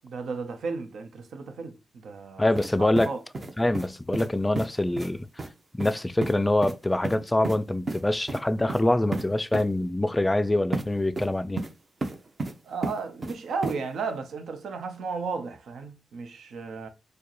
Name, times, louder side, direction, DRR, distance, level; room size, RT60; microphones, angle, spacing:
voice 1, 0.0-2.5 2.8-3.2 12.6-16.9, right 4 dB, 85° right, 0.7 m, -34 dB
voice 2, 2.4-3.1 3.6-5.3 5.7-11.6, left 1 dB, 15° left, 0.3 m, -25 dB
sound 1, 2.6-2.7 3.0-3.9 4.1-4.3 4.6-4.7 5.0-5.1 5.4-5.5 5.8-5.9 6.2-6.3 6.6-6.7 7.0-7.6 7.9-8.0 8.3-8.4 8.7-8.8 9.1-9.2 9.5-9.6 10.7-10.8 11.2-11.7 12.0-12.5 12.8-13.4 13.6-13.8, right 3 dB, 40° right, 0.7 m, -32 dB
4.5 x 2.2 x 3.0 m
cardioid pair, 75°, 0 cm